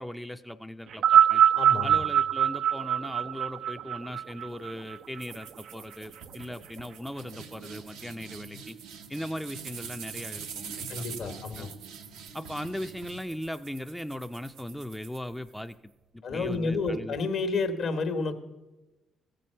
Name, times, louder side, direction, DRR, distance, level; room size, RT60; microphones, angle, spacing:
voice 1, 0.0-1.4 1.8-8.8 9.1-11.7 12.3-17.2, equal, ahead, 7 dB, 0.4 m, -39 dB
sound 1, 0.9-5.4 6.3-6.4, right 10 dB, 65° right, 0.3 m, -23 dB
voice 2, 1.6-2.0 10.9-11.7 16.2-18.3, left 3 dB, 65° left, 6 dB, 1.2 m, -30 dB
sound 2, 5.2-15.7, right 6 dB, 90° right, 0.8 m, -44 dB
14.5 x 7.7 x 5.5 m, 1.1 s
supercardioid pair, 65°, 0 cm